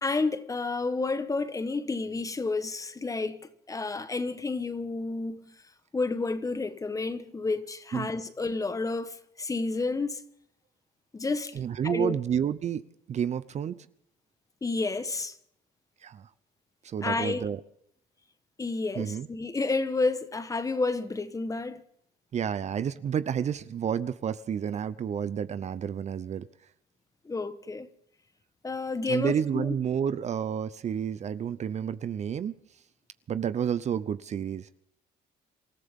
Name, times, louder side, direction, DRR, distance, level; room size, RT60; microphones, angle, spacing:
voice 1, 0.0-3.4 3.7-5.4 5.9-10.2 11.1-11.5 11.8-12.2 14.6-15.3 17.0-17.4 18.6-21.8 27.2-27.9 28.6-29.7, left 3 dB, 20° left, 1.2 m, -30 dB
voice 2, 11.5-12.8 13.1-13.9 16.0-16.3 16.8-17.6 18.9-19.3 22.3-26.5 29.1-32.5 33.3-34.7, right 8 dB, 45° right, 0.7 m, -30 dB
27.5 x 14.0 x 3.7 m
cardioid pair, 110°, 17 cm